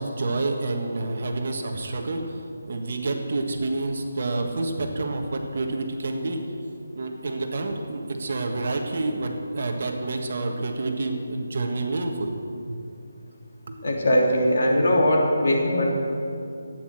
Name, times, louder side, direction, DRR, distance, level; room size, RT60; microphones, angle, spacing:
voice 1, 0.0-6.4 6.9-12.3 12.7-12.8 13.7-13.8, right 2 dB, 45° right, 3 dB, 1.5 m, -28 dB
voice 2, 13.8-16.0, equal, 55° left, -1 dB, 3.1 m, -20 dB
13.0 x 9.7 x 7.6 m, 2.6 s
hypercardioid pair, 175°, 0 cm